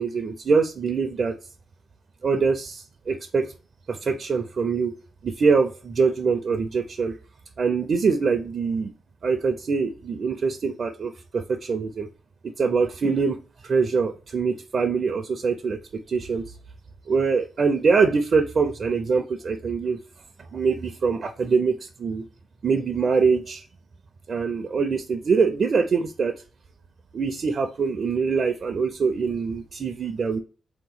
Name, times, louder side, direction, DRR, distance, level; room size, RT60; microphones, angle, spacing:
voice 1, 0.0-1.4 2.2-3.5 3.9-4.9 5.2-7.1 7.6-8.9 9.2-12.1 12.4-15.8 16.1-16.4 17.1-20.0 20.5-22.2 22.6-23.6 24.3-26.4 27.1-30.4, right 5 dB, 55° right, 6 dB, 0.5 m, -24 dB
3.6 x 2.9 x 3.9 m, 0.35 s
supercardioid pair, 60°, 0 cm